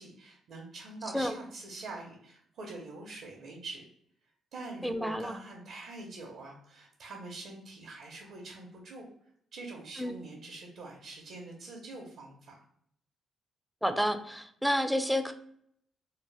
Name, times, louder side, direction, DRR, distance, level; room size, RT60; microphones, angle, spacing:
voice 1, 0.0-3.8 4.5-9.1 9.5-12.6, right 3 dB, 70° right, -2 dB, 0.7 m, -45 dB
voice 2, 4.8-5.4 10.0-10.2 13.8-15.3, equal, ahead, 8 dB, 0.3 m, -30 dB
2.7 x 2.0 x 3.2 m, 0.67 s
cardioid pair, 90°, 0 cm